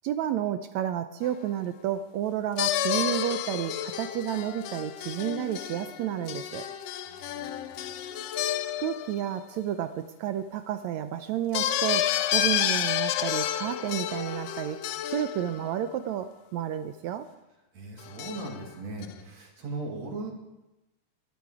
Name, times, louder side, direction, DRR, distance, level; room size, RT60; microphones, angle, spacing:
voice 1, 0.0-6.7 8.8-14.8 15.1-17.3, right 11 dB, 75° right, 10 dB, 1.8 m, -31 dB
sound 1, 1.2-1.5 2.6-9.6 11.5-15.7 18.0-18.7 19.0-19.1, left 11 dB, 85° left, 1.4 m, -30 dB
voice 2, 7.0-7.5 7.8-7.9 17.7-20.3, right 3 dB, 60° right, 0 dB, 3.4 m, -38 dB
21.5 x 12.0 x 4.9 m, 0.98 s
omnidirectional pair, 3.6 m